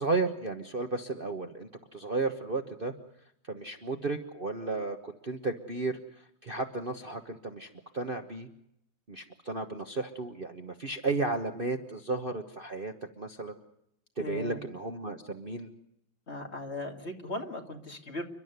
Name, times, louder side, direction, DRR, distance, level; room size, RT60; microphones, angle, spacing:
voice 1, 0.0-2.9 3.4-8.5 9.1-13.5 14.2-15.7, right 3 dB, 30° right, 4 dB, 1.3 m, -34 dB
voice 2, 14.2-14.6 16.3-18.2, left 2 dB, 35° left, 4 dB, 2.5 m, -37 dB
29.5 x 12.0 x 9.4 m, 0.78 s
omnidirectional pair, 2.1 m